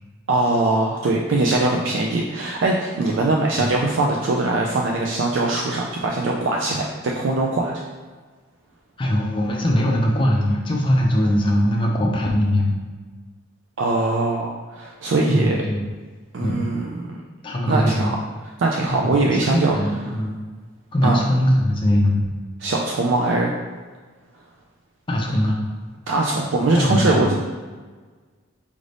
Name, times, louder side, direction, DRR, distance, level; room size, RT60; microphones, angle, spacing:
voice 1, 0.3-7.7 13.8-15.6 16.3-17.2 17.7-18.2 18.6-19.8 21.0-21.2 22.6-23.5 26.1-27.4, right 2 dB, 65° right, -1 dB, 0.4 m, -21 dB
voice 2, 9.0-12.8 15.3-15.8 16.4-16.6 17.4-18.1 18.9-20.4 20.9-22.2 25.1-25.6 26.7-27.3, equal, 25° left, -1 dB, 0.5 m, -21 dB
5.0 x 2.6 x 3.3 m, 1.4 s
head